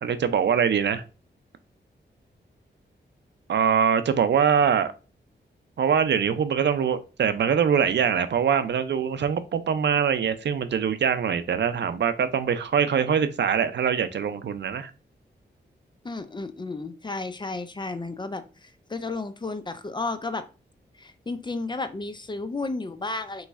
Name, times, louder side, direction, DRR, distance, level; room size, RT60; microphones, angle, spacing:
voice 1, 0.0-1.0 3.5-4.9 5.8-14.9, right 7 dB, 75° right, 0.5 m, -23 dB
voice 2, 16.0-20.5 21.0-23.5, left 3 dB, 25° left, 0.5 m, -33 dB
4.1 x 3.1 x 3.5 m
wide cardioid pair, 95°, 18 cm